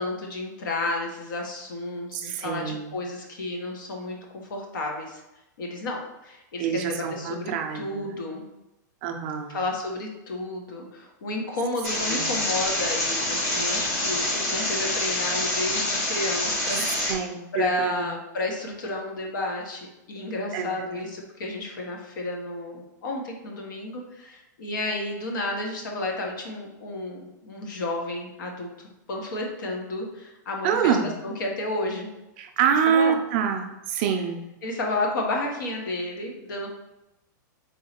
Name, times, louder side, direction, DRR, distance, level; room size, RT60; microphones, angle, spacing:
voice 1, 0.0-4.2 4.5-5.2 5.6-8.4 9.5-17.1 17.5-28.7 29.1-31.0 31.2-32.1 32.9-33.2 34.6-36.7, left 2 dB, 90° left, 1 dB, 1.2 m, -31 dB
voice 2, 2.1-2.9 6.6-8.2 9.0-9.6 12.1-12.4 16.7-18.1 20.5-21.0 30.6-31.1 32.4-34.4, right 7 dB, 30° right, 4 dB, 0.4 m, -26 dB
sound 1, 11.8-17.1, left 1 dB, 50° left, 1.5 m, -26 dB
3.7 x 3.1 x 4.3 m, 0.96 s
supercardioid pair, 175°, 10 cm